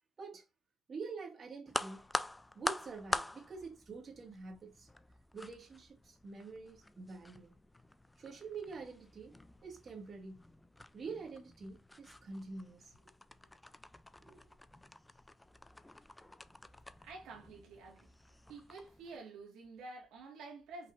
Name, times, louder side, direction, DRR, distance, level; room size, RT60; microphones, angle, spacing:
voice 1, 0.9-2.1 2.5-4.9 5.3-7.5 8.2-9.3 9.6-10.4 10.9-13.0 14.2-14.5, right 4 dB, 45° right, 1.7 m, -47 dB
sound 1, 1.7-19.2, left 1 dB, 10° left, 0.3 m, -45 dB
voice 2, 17.0-18.1 18.5-20.9, right 3 dB, 90° right, 1.6 m, -50 dB
5.1 x 3.2 x 2.5 m
cardioid pair, 90°, 0 cm